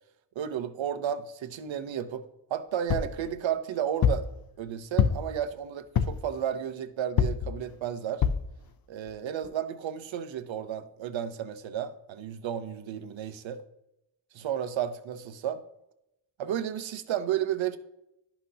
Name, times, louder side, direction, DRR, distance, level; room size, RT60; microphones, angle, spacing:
voice 1, 0.4-4.3 4.6-8.2 8.9-13.6 14.3-15.6 16.4-17.8, right 9 dB, 75° right, 10 dB, 0.8 m, -32 dB
sound 1, 2.9-3.2 4.0-4.3 5.0-5.4 6.0-6.3 7.2-7.5 8.2-8.5 9.1-9.2 9.4-9.5, left 7 dB, 50° left, 0.6 m, -25 dB
11.5 x 5.9 x 2.8 m, 0.84 s
cardioid pair, 100°, 46 cm